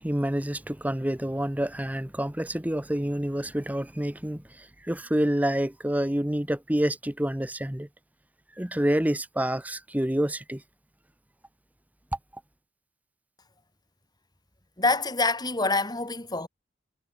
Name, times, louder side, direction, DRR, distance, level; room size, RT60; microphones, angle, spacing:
voice 1, 0.0-7.9 8.6-10.6, right 1 dB, 10° right, 0.9 m, -28 dB
voice 2, 14.8-16.5, left 3 dB, 20° left, 5.9 m, -26 dB
head